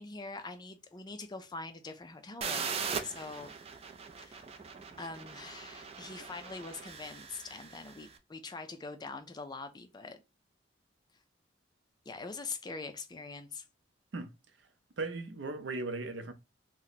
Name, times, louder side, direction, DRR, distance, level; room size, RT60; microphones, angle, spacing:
voice 1, 0.0-3.5 4.2-4.4 5.0-10.2 12.1-13.6, left 3 dB, 25° left, 0.4 m, -43 dB
sound 1, 2.4-8.1, right 6 dB, 35° right, 0.4 m, -40 dB
voice 2, 15.0-16.3, right 3 dB, 80° right, 0.6 m, -37 dB
2.9 x 2.1 x 3.9 m
head